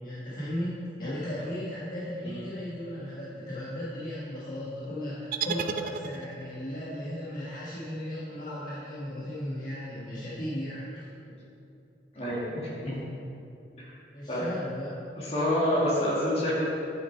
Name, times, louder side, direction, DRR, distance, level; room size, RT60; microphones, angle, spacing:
voice 1, 0.0-11.1 14.1-14.9, left 1 dB, 50° left, -9 dB, 1.4 m, -36 dB
sound 1, 5.3-6.6, right 7 dB, 50° right, 0.3 m, -33 dB
voice 2, 12.1-13.0 14.3-14.4 15.2-16.6, equal, 35° left, -6 dB, 2.1 m, -27 dB
9.6 x 6.1 x 4.5 m, 2.7 s
head